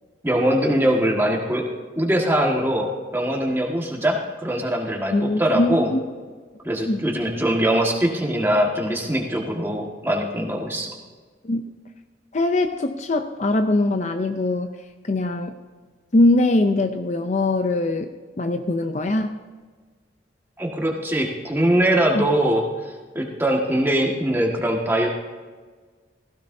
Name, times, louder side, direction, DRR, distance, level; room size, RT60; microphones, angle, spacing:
voice 1, 0.2-1.6 1.9-4.2 4.4-5.9 6.6-10.9 20.6-22.6 23.1-25.1, right 1 dB, 10° right, 0 dB, 1.7 m, -22 dB
voice 2, 5.1-6.1 6.9-7.0 11.4-11.6 12.3-14.7 15.1-15.5 16.1-18.1 18.4-19.4 22.1-22.3, left 2 dB, 40° left, 7 dB, 0.6 m, -22 dB
16.5 x 15.5 x 2.7 m, 1.4 s
head